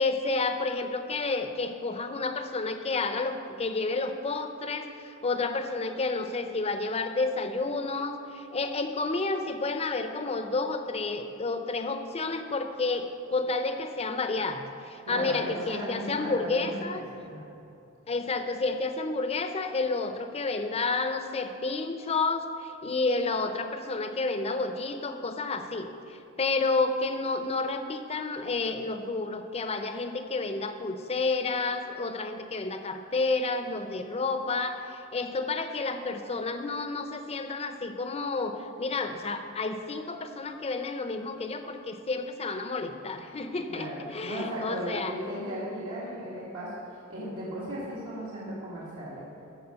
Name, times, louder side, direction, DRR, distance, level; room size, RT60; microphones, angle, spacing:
voice 1, 0.0-17.0 18.1-45.1, left 3 dB, 30° left, 7 dB, 0.6 m, -30 dB
voice 2, 15.0-15.3 15.7-17.4 43.7-49.3, equal, 75° right, -9 dB, 2.1 m, -36 dB
13.5 x 4.9 x 6.7 m, 2.7 s
head